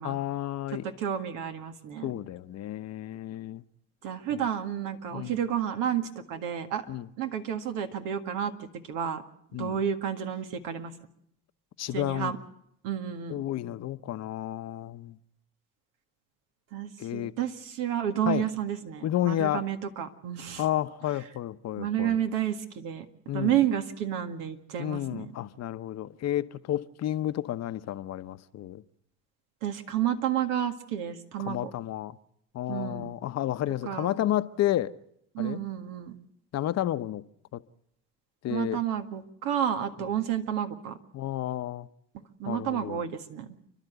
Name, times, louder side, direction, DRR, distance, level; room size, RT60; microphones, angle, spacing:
voice 1, 0.0-0.9 2.0-3.6 4.3-4.4 5.1-5.4 6.9-7.1 9.5-9.8 11.8-12.3 13.3-15.2 17.0-17.3 18.2-18.5 19.0-19.7 20.6-22.2 23.3-23.6 24.8-28.8 31.4-32.2 32.5-34.9 35.4-35.6 36.5-37.2 37.5-37.6 38.4-38.8 41.1-41.9 42.5-43.0, left 13 dB, 55° left, 0.9 m, -31 dB
voice 2, 0.8-2.1 4.0-6.8 7.2-9.2 9.6-10.9 11.9-12.4 12.8-13.4 16.7-20.6 21.8-23.1 23.3-25.3 29.6-31.6 32.7-33.1 33.9-34.2 35.3-36.2 38.5-41.0 42.4-43.5, right 10 dB, 75° right, 1.9 m, -31 dB
29.5 x 11.5 x 8.1 m
supercardioid pair, 70°, 31 cm